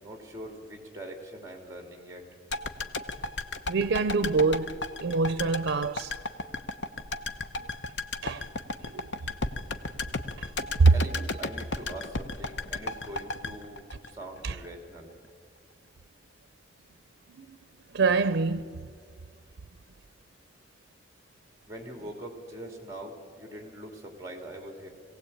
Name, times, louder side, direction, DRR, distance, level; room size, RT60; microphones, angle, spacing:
voice 1, 0.0-2.2 10.9-15.1 21.7-24.9, right 1 dB, 15° right, 2.5 m, -43 dB
sound 1, 2.5-14.7 15.0-15.1, left 3 dB, 75° left, 0.9 m, -34 dB
voice 2, 3.7-6.1 8.2-8.5 8.8-9.1 10.4-10.5 10.8-10.9 14.4-14.6 17.3-17.6 17.9-18.8, right 4 dB, 90° right, 0.5 m, -25 dB
22.5 x 17.0 x 8.5 m
head